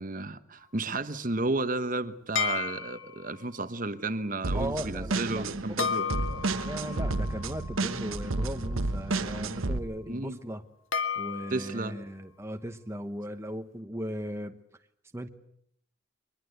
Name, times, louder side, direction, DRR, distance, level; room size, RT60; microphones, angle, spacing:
voice 1, 0.0-6.0 10.1-10.4 11.5-11.9, right 2 dB, 40° right, 11 dB, 1.1 m, -32 dB
sound 1, 2.4-3.4 5.8-8.9 10.9-11.8, left 7 dB, 75° left, 1.8 m, -34 dB
sound 2, 4.4-9.8, right 2 dB, 85° right, 1.3 m, -31 dB
voice 2, 4.5-5.4 5.7-10.6 11.2-14.6 15.1-15.3, equal, 15° right, 7 dB, 1.1 m, -37 dB
24.0 x 21.0 x 8.1 m, 0.71 s
head